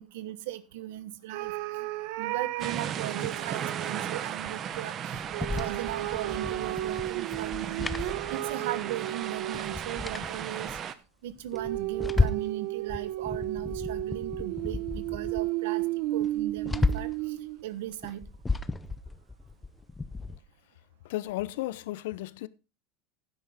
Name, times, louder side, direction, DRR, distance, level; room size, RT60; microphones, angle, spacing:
voice 1, 0.0-1.9 2.2-10.8 11.2-15.8 16.1-18.3, right 13 dB, 80° right, 1.1 m, -38 dB
sound 1, 1.3-4.3 5.3-10.1 11.5-17.6, right 16 dB, 65° right, 0.7 m, -34 dB
sound 2, 2.6-10.9, right 9 dB, 35° right, 0.9 m, -36 dB
sound 3, 5.1-8.8 9.1-9.2 9.5-10.8 11.3-12.6 12.9-15.5 15.8-15.9 16.2-17.3 17.9-20.4, left 3 dB, 10° left, 0.6 m, -33 dB
voice 2, 21.0-22.5, left 16 dB, 80° left, 0.7 m, -34 dB
12.0 x 10.0 x 3.6 m
supercardioid pair, 140°, 0 cm